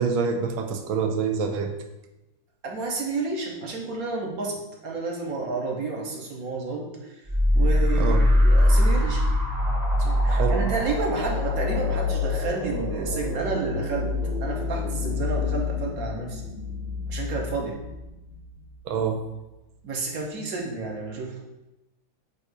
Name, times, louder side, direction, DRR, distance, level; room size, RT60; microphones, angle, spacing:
voice 1, 0.0-1.7 8.0-8.3 10.3-10.5 18.8-19.2, right 5 dB, 75° right, 5 dB, 1.5 m, -26 dB
voice 2, 2.6-7.2 7.5-9.2 10.0-14.1 14.4-16.4 17.1-17.8 19.8-21.4, right 3 dB, 50° right, 0 dB, 1.3 m, -31 dB
sound 1, 7.3-18.6, left 1 dB, 25° right, 1.1 m, -24 dB
7.9 x 2.7 x 4.8 m, 0.98 s
omnidirectional pair, 2.3 m